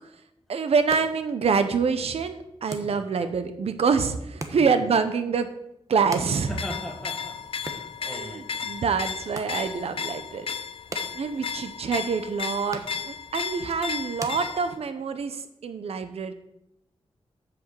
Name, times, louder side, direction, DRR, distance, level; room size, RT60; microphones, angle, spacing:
voice 1, 0.5-5.5 5.9-6.5 8.1-10.5 11.1-16.3, right 5 dB, 75° right, 9 dB, 0.8 m, -26 dB
sound 1, 0.6-15.1, right 2 dB, 30° right, 1.0 m, -45 dB
sound 2, 6.5-14.8, left 6 dB, 60° left, 0.6 m, -34 dB
voice 2, 6.5-8.8 11.2-11.6, equal, ahead, 1 dB, 1.6 m, -40 dB
7.8 x 6.2 x 7.4 m, 0.82 s
wide cardioid pair, 170°, 10 cm